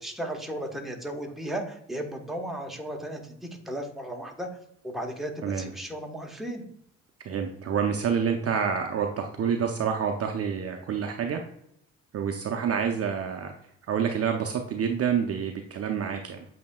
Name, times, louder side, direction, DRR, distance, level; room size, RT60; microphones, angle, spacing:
voice 1, 0.0-4.5 4.8-6.6, right 1 dB, ahead, 2 dB, 1.0 m, -35 dB
voice 2, 7.2-11.4 12.1-13.5 13.9-16.5, right 7 dB, 40° right, 3 dB, 0.6 m, -28 dB
8.1 x 2.8 x 2.2 m, 0.70 s
hypercardioid pair, 50°, 38 cm